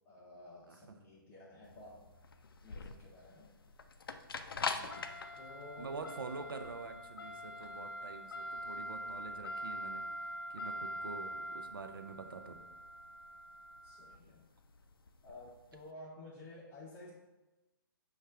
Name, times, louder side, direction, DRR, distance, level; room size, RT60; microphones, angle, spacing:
voice 1, 0.0-2.1 2.6-3.5 5.4-6.0 13.8-14.5 15.2-17.1, left 2 dB, 20° left, -7 dB, 0.6 m, -53 dB
sound 1, 1.7-15.8, left 1 dB, 70° left, 0.4 m, -43 dB
voice 2, 4.6-4.9 5.8-10.0 10.5-12.6, right 4 dB, 65° right, 6 dB, 0.5 m, -46 dB
6.3 x 2.4 x 3.3 m, 1.1 s
figure-of-eight pair, 125°, 12 cm